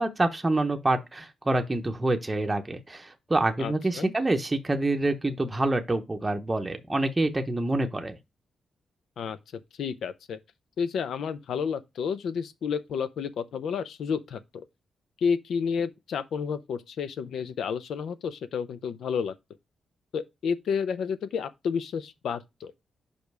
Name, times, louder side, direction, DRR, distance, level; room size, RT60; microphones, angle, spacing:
voice 1, 0.0-8.2, right 2 dB, 15° right, 0.7 m, -27 dB
voice 2, 3.6-4.1 9.2-9.4 9.8-10.4 10.8-14.7 15.2-19.3 20.1-22.7, left 6 dB, 80° left, 0.6 m, -31 dB
5.2 x 5.0 x 4.6 m
cardioid pair, 115°, 0 cm